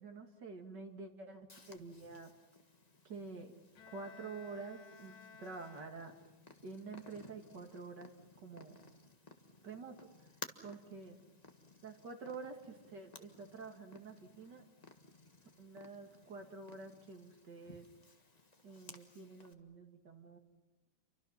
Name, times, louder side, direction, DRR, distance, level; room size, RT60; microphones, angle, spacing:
voice 1, 0.0-2.3 3.0-3.5 3.9-5.1 5.4-6.1 6.6-8.1 8.4-8.7 9.6-10.1 10.6-11.2 11.8-14.6 15.6-17.9 18.6-20.4, right 4 dB, 65° right, 3 dB, 3.0 m, -48 dB
Purr, 1.5-19.5, left 3 dB, 25° left, 1.5 m, -58 dB
Bowed string instrument, 3.7-6.5, left 6 dB, 90° left, 2.3 m, -57 dB
29.0 x 24.5 x 5.8 m, 1.1 s
omnidirectional pair, 2.0 m